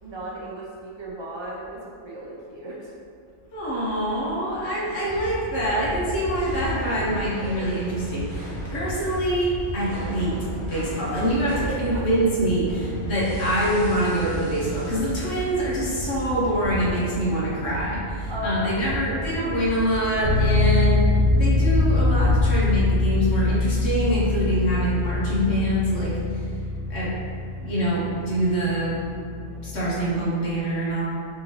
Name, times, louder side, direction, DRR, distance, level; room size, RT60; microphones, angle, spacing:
voice 1, 0.0-2.9 8.6-9.1 11.6-12.1 18.3-18.8 29.3-29.7, equal, 35° right, -4 dB, 0.4 m, -36 dB
voice 2, 3.5-10.3 10.7-21.0 21.3-26.1 26.9-27.1 27.6-29.0 29.6-31.0, right 1 dB, 55° left, -8 dB, 1.4 m, -25 dB
sound 1, 5.0-22.4, equal, 85° left, 1.5 m, -33 dB
sound 2, 6.4-17.6, equal, 20° left, 1.2 m, -40 dB
sound 3, 20.2-29.9, left 3 dB, 80° right, 1.8 m, -24 dB
5.1 x 2.8 x 3.1 m, 2.3 s
omnidirectional pair, 1.4 m